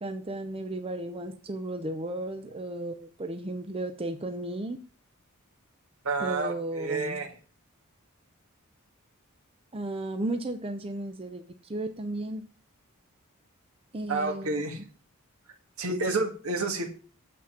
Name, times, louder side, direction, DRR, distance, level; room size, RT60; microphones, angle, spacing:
voice 1, 0.0-4.8 6.2-7.2 9.7-11.4 11.7-12.4 13.9-14.8, right 1 dB, 25° right, 7 dB, 0.7 m, -34 dB
voice 2, 6.0-7.3 14.1-14.8 15.8-16.9, right 3 dB, 80° right, 3 dB, 2.0 m, -29 dB
7.5 x 6.1 x 5.8 m, 0.41 s
head